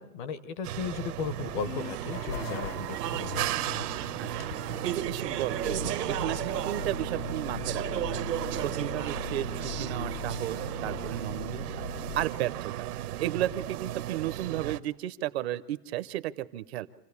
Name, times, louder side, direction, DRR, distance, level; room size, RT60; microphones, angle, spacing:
voice 1, 0.0-3.5, left 6 dB, 30° left, 15 dB, 0.7 m, -36 dB
sound 1, 0.6-14.8, right 13 dB, 70° right, 1.0 m, -36 dB
sound 2, 1.4-12.2, left 10 dB, 80° left, 0.7 m, -41 dB
Speech / Chatter, 1.8-11.2, right 12 dB, 85° right, 1.3 m, -36 dB
voice 2, 4.8-7.8 8.1-8.3 8.6-11.7 12.2-12.9 13.2-16.9, right 13 dB, 40° right, 14 dB, 0.6 m, -33 dB
27.5 x 15.0 x 8.4 m, 1.1 s
supercardioid pair, 165°, 47 cm